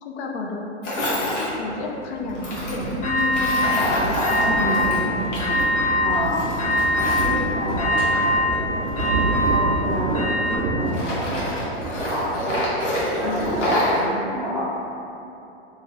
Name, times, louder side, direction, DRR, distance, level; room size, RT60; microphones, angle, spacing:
voice 1, 0.0-3.9 4.6-4.9 8.7-8.8 12.4-12.6 13.0-13.4, left 4 dB, 70° left, 0 dB, 0.5 m, -31 dB
Tools, 0.8-1.5 2.3-5.6 5.9-8.2 8.8-10.5 10.8-14.0, equal, 90° left, 1.0 m, -27 dB
Thunder, 1.5-13.8, right 2 dB, 90° right, 0.5 m, -29 dB
sound 1, 3.0-3.9 4.2-5.1 5.4-6.3 6.6-10.6, left 1 dB, 50° left, 1.0 m, -23 dB
voice 2, 4.4-5.4 6.0-6.5 6.9-8.2 9.5-11.4 12.0-12.3 13.0-14.6, equal, 10° right, -10 dB, 0.4 m, -28 dB
2.7 x 2.4 x 3.0 m, 2.8 s
hypercardioid pair, 120°, 35 cm